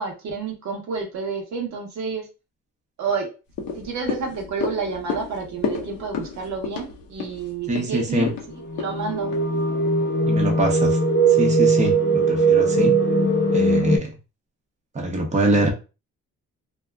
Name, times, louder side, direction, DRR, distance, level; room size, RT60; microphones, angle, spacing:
voice 1, 0.0-2.3 3.0-3.3 3.7-8.3 8.8-9.4, right 5 dB, 65° right, 2 dB, 0.8 m, -29 dB
sound 1, 3.5-10.0 10.4-10.5, left 5 dB, 75° left, 0.7 m, -32 dB
voice 2, 7.7-8.3 10.2-11.0 11.4-13.0 13.5-14.1 14.9-15.7, right 2 dB, 25° right, 2 dB, 0.7 m, -23 dB
sound 2, 8.5-14.0, right 3 dB, 35° left, 0.7 m, -20 dB
2.7 x 2.3 x 2.2 m, 0.30 s
cardioid pair, 90°, 30 cm